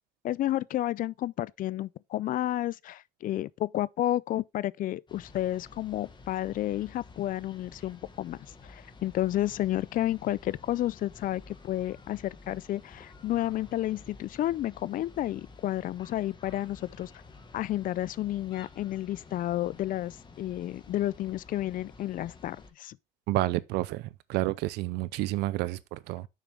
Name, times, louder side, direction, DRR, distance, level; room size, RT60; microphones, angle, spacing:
voice 1, 0.2-8.4 8.6-17.1 17.5-23.0, left 14 dB, 55° left, 0.4 m, -31 dB
sound 1, 5.1-22.7, left 3 dB, 25° left, 1.4 m, -51 dB
voice 2, 23.3-26.3, right 17 dB, 90° right, 0.6 m, -30 dB
6.6 x 6.3 x 3.3 m
cardioid pair, 110°, 17 cm